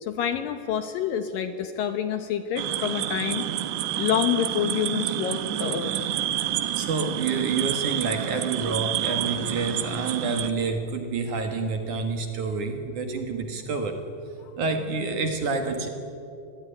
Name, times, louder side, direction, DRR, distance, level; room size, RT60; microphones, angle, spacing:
voice 1, 0.0-3.5 4.0-6.0, left 9 dB, 70° left, 9 dB, 2.3 m, -27 dB
sound 1, 2.6-10.5, right 12 dB, 80° right, 3.4 m, -29 dB
voice 2, 6.3-14.0 14.6-15.9, right 4 dB, 55° right, 6 dB, 2.6 m, -28 dB
27.0 x 21.0 x 10.0 m, 2.7 s
omnidirectional pair, 4.9 m